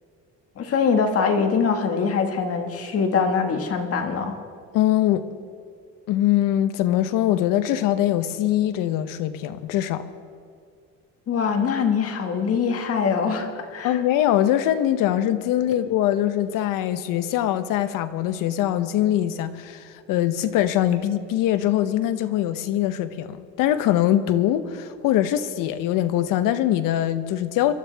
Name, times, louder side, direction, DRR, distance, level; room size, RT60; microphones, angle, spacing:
voice 1, 0.6-4.4 11.3-14.0, left 5 dB, 45° left, 1.7 m, -23 dB
voice 2, 4.7-5.3 6.1-10.1 13.8-27.7, left 12 dB, 80° left, 0.9 m, -22 dB
23.5 x 12.5 x 3.5 m
cardioid pair, 130°, 32 cm